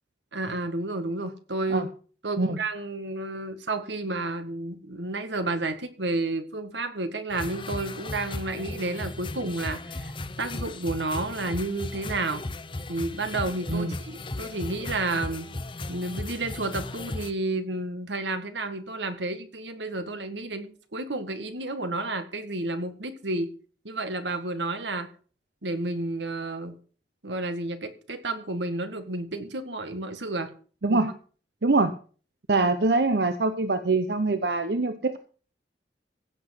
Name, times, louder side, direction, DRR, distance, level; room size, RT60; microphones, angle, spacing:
voice 1, 0.3-1.9 2.2-10.1 10.4-12.4 12.9-15.5 15.9-23.5 23.8-25.1 25.6-26.8 27.2-30.5 30.9-31.0, right 2 dB, 85° right, 9 dB, 1.9 m, -31 dB
sound 1, 7.3-17.3, left 2 dB, 30° left, 0.8 m, -36 dB
voice 2, 31.6-31.9 32.5-35.2, right 3 dB, 65° right, 10 dB, 0.8 m, -24 dB
16.0 x 7.8 x 5.9 m, 0.41 s
head